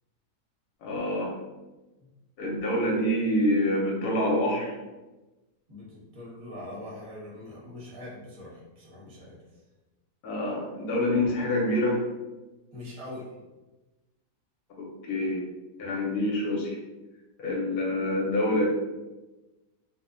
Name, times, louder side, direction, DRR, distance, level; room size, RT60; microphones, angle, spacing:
voice 1, 0.8-1.3 2.4-4.8 10.2-12.0 14.8-15.4 15.8-16.8 17.4-18.7, left 1 dB, 70° left, -2 dB, 1.0 m, -26 dB
voice 2, 5.7-9.4 12.7-13.3, left 1 dB, 30° right, -6 dB, 0.6 m, -42 dB
2.9 x 2.0 x 2.5 m, 1.1 s
omnidirectional pair, 1.8 m